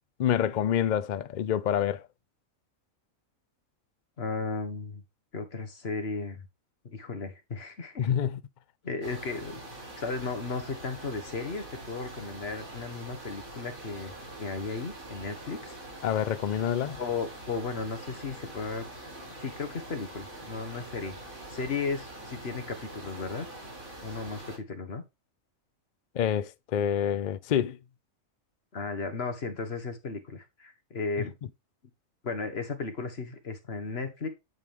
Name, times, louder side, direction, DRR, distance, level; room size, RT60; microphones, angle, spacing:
voice 1, 0.2-2.0 8.0-8.4 16.0-17.0 26.1-27.8, left 9 dB, 75° left, 0.4 m, -27 dB
voice 2, 4.2-5.0 5.3-6.4 6.8-8.1 8.8-9.6 10.0-14.1 14.4-15.8 17.0-18.9 19.4-21.1 21.5-23.4 24.0-25.0 28.7-31.3 32.2-34.3, left 4 dB, 50° left, 1.6 m, -35 dB
sound 1, 9.0-24.6, right 1 dB, 90° right, 4.0 m, -44 dB
9.6 x 4.9 x 3.5 m
omnidirectional pair, 1.4 m